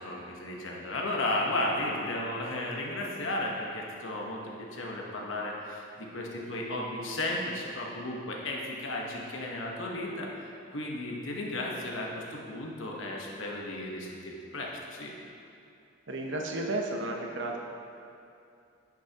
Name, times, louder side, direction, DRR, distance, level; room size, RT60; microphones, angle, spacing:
voice 1, 0.0-15.1, left 1 dB, 90° left, -1 dB, 1.1 m, -34 dB
voice 2, 16.1-17.6, right 2 dB, 70° right, 1 dB, 0.9 m, -32 dB
10.5 x 6.2 x 2.9 m, 2.6 s
head